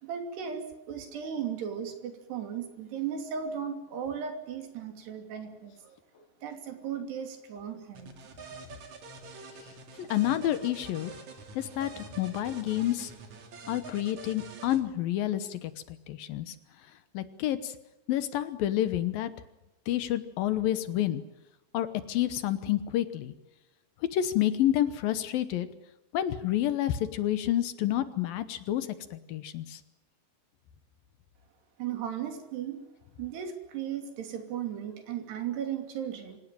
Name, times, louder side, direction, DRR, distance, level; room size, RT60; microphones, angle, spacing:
voice 1, 0.0-6.0 6.4-8.1 31.8-32.8 33.2-36.4, right 8 dB, 85° right, 6 dB, 4.9 m, -36 dB
sound 1, 7.9-14.8, right 4 dB, 50° right, 3.4 m, -46 dB
voice 2, 10.0-11.1 11.6-13.1 13.7-16.6 17.1-17.7 18.1-19.3 19.9-21.2 21.7-23.3 24.1-25.7 26.1-29.8, left 12 dB, 70° left, 13 dB, 2.6 m, -29 dB
26.0 x 17.0 x 9.1 m, 0.94 s
omnidirectional pair, 4.7 m